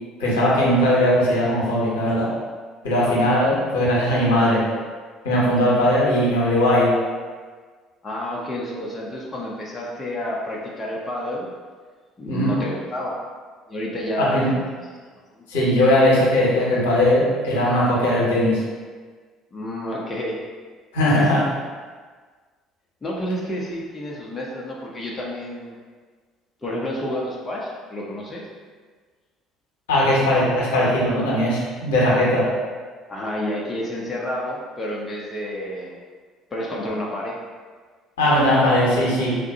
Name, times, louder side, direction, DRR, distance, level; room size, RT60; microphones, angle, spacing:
voice 1, 0.2-2.3 2.8-4.6 5.2-6.9 12.3-12.5 14.2-14.5 15.5-18.6 20.9-21.5 29.9-32.5 38.2-39.4, left 1 dB, 70° left, -6 dB, 1.0 m, -19 dB
voice 2, 8.0-11.5 12.2-13.2 13.7-15.0 15.4-15.5 19.5-20.4 21.1-21.5 23.0-25.8 26.6-28.5 33.1-35.9 36.5-37.4, left 1 dB, 20° left, -4 dB, 0.7 m, -29 dB
3.6 x 2.5 x 4.1 m, 1.5 s
figure-of-eight pair, 55°, 0 cm